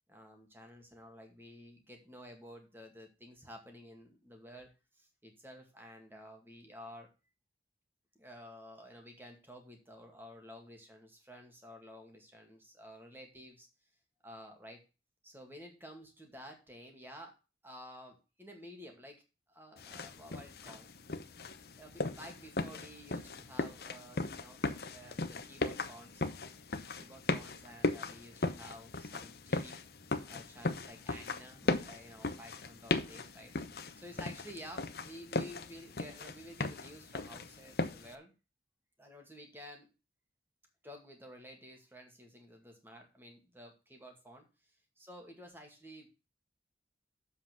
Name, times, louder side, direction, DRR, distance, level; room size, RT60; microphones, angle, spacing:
voice 1, 0.1-7.1 8.2-13.7 14.2-14.8 15.2-17.4 17.6-19.2 19.5-20.9 21.8-26.3 27.0-29.8 30.2-33.5 33.9-38.3 39.0-39.9 40.8-46.1, equal, 10° right, 3 dB, 2.1 m, -52 dB
sound 1, 19.8-38.1, left 2 dB, 60° left, 0.8 m, -38 dB
7.7 x 5.8 x 6.1 m, 0.30 s
head